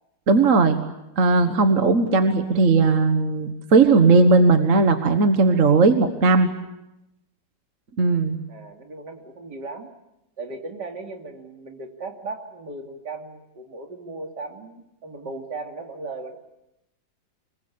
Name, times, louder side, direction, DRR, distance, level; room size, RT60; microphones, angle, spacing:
voice 1, 0.3-0.8 1.2-6.5 8.0-8.4, right 3 dB, 45° right, 7 dB, 1.7 m, -17 dB
voice 2, 8.5-9.9 10.4-16.4, right 3 dB, 65° right, 3 dB, 3.3 m, -37 dB
25.5 x 22.5 x 8.7 m, 0.89 s
omnidirectional pair, 2.0 m